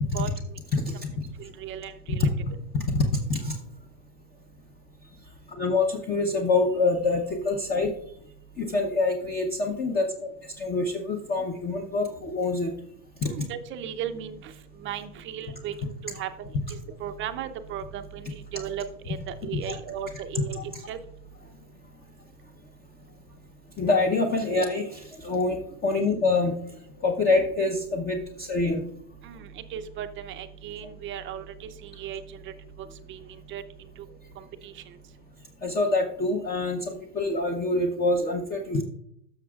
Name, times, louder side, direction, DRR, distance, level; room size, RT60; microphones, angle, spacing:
voice 1, 1.4-2.3 13.2-14.5 14.8-20.6 20.9-21.0 29.2-32.4 33.1-33.2 33.5-33.6 34.4-34.8, right 9 dB, 25° right, 9 dB, 0.6 m, -36 dB
voice 2, 2.7-3.6 5.6-7.9 8.6-10.1 10.6-12.7 13.2-13.3 19.7-19.8 20.6-20.7 23.8-26.6 27.0-28.8 35.6-38.8, left 3 dB, 20° left, 2 dB, 0.8 m, -25 dB
13.5 x 6.0 x 2.4 m, 0.71 s
supercardioid pair, 135°, 45 cm